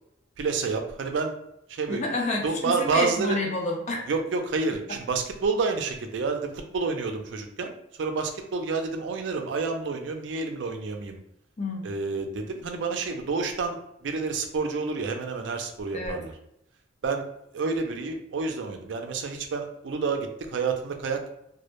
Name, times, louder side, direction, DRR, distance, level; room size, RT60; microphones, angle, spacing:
voice 1, 0.4-1.3 1.7-2.0 2.4-3.4 4.1-7.7 8.0-11.2 11.8-16.3 17.0-17.2 17.5-21.3, right 4 dB, 80° right, 5 dB, 0.4 m, -29 dB
voice 2, 1.9-4.0 11.6-11.9 15.9-16.2, left 2 dB, 40° left, 0 dB, 0.5 m, -29 dB
2.1 x 2.0 x 2.9 m, 0.79 s
head